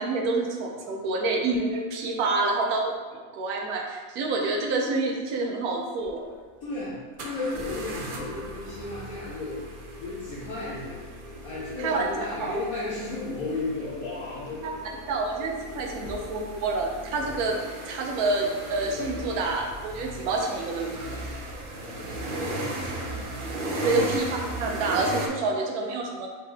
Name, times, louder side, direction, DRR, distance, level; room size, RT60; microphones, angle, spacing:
voice 1, 0.0-2.9 3.3-6.3 11.8-12.0 12.4-12.6 15.1-17.6 17.9-21.3 23.8-24.3 24.6-26.3, right 3 dB, 85° right, 1 dB, 1.2 m, -28 dB
sound 1, 6.0-6.1 7.2-25.3, right 1 dB, 65° right, 0.5 m, -37 dB
voice 2, 6.6-9.6 10.0-11.0 11.4-14.7 21.7-23.5 23.8-24.1, left 2 dB, 70° left, -9 dB, 1.3 m, -34 dB
3.7 x 3.5 x 3.3 m, 1.4 s
omnidirectional pair, 1.5 m